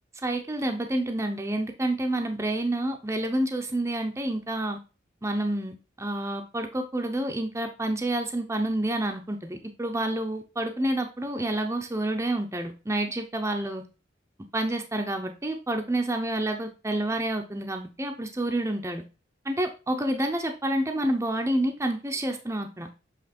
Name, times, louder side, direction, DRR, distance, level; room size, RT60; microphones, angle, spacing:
voice 1, 0.2-4.8 5.2-13.8 14.5-19.0 19.4-22.9, right 1 dB, 15° right, 4 dB, 0.6 m, -28 dB
7.5 x 3.3 x 4.3 m, 0.31 s
head